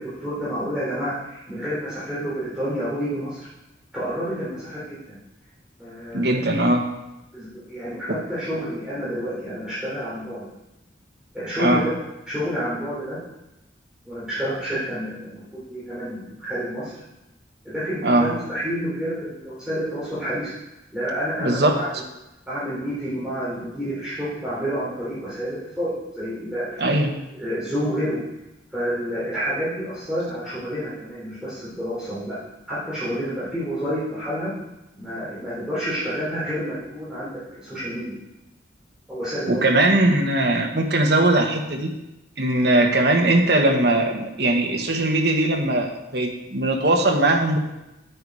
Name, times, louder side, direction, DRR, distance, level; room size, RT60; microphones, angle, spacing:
voice 1, 0.0-3.5 3.9-5.2 5.8-6.4 7.3-10.5 11.3-11.9 12.3-13.2 14.1-16.9 17.6-20.5 20.9-22.0 22.5-26.9 27.4-28.2 28.7-32.4 32.7-34.5 35.0-38.1 39.1-39.6, equal, 5° right, -11 dB, 3.9 m, -29 dB
voice 2, 6.1-6.8 11.6-11.8 18.0-18.3 21.4-21.8 26.8-27.1 39.5-41.9 42.4-47.6, right 1 dB, 60° right, 2 dB, 1.5 m, -20 dB
9.7 x 8.6 x 4.9 m, 0.93 s
head